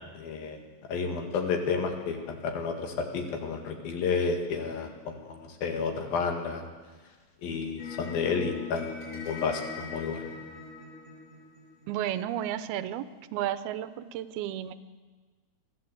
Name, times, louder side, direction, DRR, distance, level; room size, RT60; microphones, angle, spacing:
voice 1, 0.2-0.6 0.9-6.6 7.4-10.3, left 5 dB, 70° left, 4 dB, 3.7 m, -31 dB
sound 1, 7.8-12.1, left 5 dB, 40° left, 7.2 m, -41 dB
voice 2, 11.9-14.7, right 11 dB, 85° right, 13 dB, 2.7 m, -33 dB
23.5 x 14.0 x 8.0 m, 1.4 s
omnidirectional pair, 4.4 m